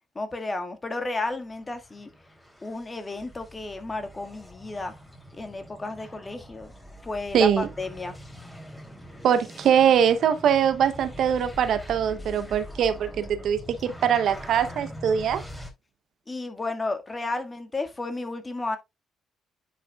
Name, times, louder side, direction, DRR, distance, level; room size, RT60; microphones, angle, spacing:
voice 1, 0.2-2.1 2.6-4.9 5.3-6.7 7.0-8.1 16.3-18.8, left 2 dB, 30° left, 1.7 m, -32 dB
sound 1, 1.3-15.7, equal, 10° left, 3.0 m, -43 dB
voice 2, 7.3-7.7 9.2-15.4, right 8 dB, 65° right, 0.7 m, -22 dB
10.0 x 5.1 x 2.3 m
hypercardioid pair, 50°, 0 cm